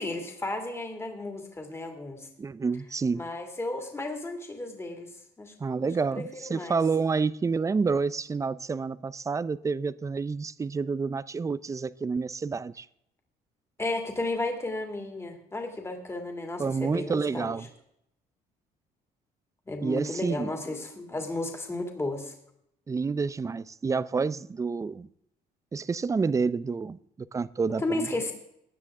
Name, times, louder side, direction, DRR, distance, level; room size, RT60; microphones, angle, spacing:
voice 1, 0.0-2.3 3.1-5.1 5.4-5.5 5.8-6.8 13.8-17.6 19.7-22.3 27.8-28.3, left 2 dB, 15° left, 2.4 m, -33 dB
voice 2, 2.4-3.3 5.6-12.9 16.6-17.7 19.8-20.5 22.9-25.1 25.7-28.1, right 4 dB, 20° right, 0.5 m, -29 dB
17.5 x 9.9 x 3.6 m
cardioid pair, 110°, 17 cm